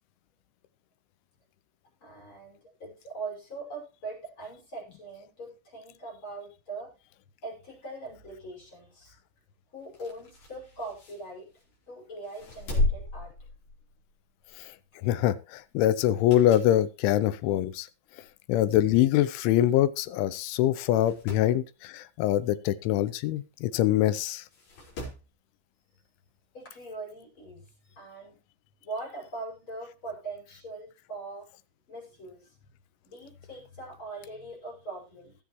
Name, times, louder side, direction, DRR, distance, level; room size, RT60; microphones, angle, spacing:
voice 1, 2.0-6.9 7.4-9.2 9.7-11.5 11.9-13.3 26.5-28.4 28.8-31.5 31.9-32.6 33.0-35.4, right 2 dB, 25° left, -1 dB, 6.1 m, -41 dB
sound 1, 9.8-11.8 12.2-14.1 14.5-14.7 16.0-16.8 17.3-17.4 18.3-18.4 18.6-18.7 18.9-19.0 19.8-20.0 20.3-20.4 20.8-21.5 23.4-23.5 24.5-25.3 26.6-26.7, left 2 dB, 50° left, 6.4 m, -34 dB
voice 2, 15.0-17.9 18.5-24.4, left 12 dB, 90° left, 15 dB, 3.3 m, -24 dB
19.5 x 7.6 x 3.1 m, 0.31 s
omnidirectional pair, 5.3 m